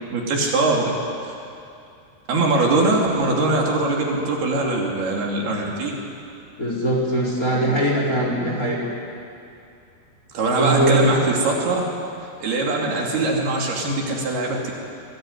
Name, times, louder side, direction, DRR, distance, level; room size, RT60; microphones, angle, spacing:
voice 1, 0.1-0.9 1.2-1.3 2.3-6.0 10.3-11.8 12.4-14.7, right 2 dB, 65° right, -1 dB, 4.7 m, -22 dB
voice 2, 6.6-8.8 10.6-11.0, right 1 dB, 20° left, -3 dB, 4.6 m, -21 dB
24.5 x 19.5 x 9.5 m, 2.6 s
omnidirectional pair, 5.1 m